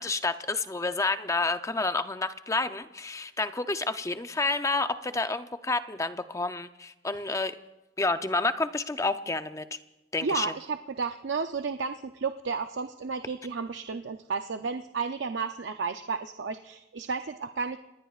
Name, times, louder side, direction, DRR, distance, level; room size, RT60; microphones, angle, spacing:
voice 1, 0.0-7.6 8.0-9.7 10.1-10.5, left 3 dB, 15° left, 10 dB, 0.5 m, -29 dB
voice 2, 10.2-17.8, right 5 dB, 65° right, 7 dB, 0.5 m, -32 dB
28.0 x 20.0 x 2.4 m, 1.0 s
head